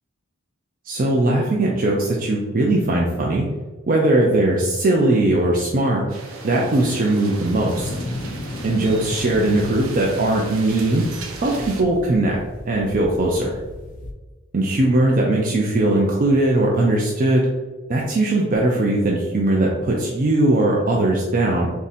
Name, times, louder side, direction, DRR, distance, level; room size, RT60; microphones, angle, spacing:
voice 1, 0.9-3.5 3.9-6.0 6.4-8.0 8.6-11.0 11.4-13.6 14.5-17.5 17.9-21.7, right 2 dB, 40° right, -2 dB, 0.4 m, -19 dB
sound 1, 6.1-11.8, right 3 dB, 75° right, 0.7 m, -38 dB
sound 2, 7.6-14.1, left 2 dB, 35° left, 0.4 m, -34 dB
3.5 x 2.7 x 4.1 m, 1.3 s
head